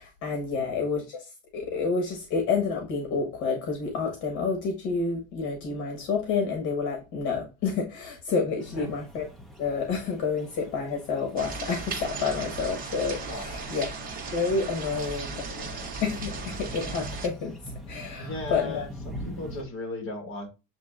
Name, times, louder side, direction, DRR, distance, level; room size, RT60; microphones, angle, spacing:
voice 1, 0.0-9.3 9.6-13.9 14.3-15.7 16.0-17.5 17.9-18.9, left 5 dB, 65° left, 1.2 m, -29 dB
sound 1, 8.6-19.6, equal, ahead, 0.6 m, -44 dB
sound 2, 11.4-17.3, right 4 dB, 30° right, 0.9 m, -36 dB
voice 2, 13.3-13.8 14.8-15.8 18.2-20.5, left 2 dB, 45° left, 1.7 m, -38 dB
7.3 x 2.7 x 2.3 m
cardioid pair, 165°, 31 cm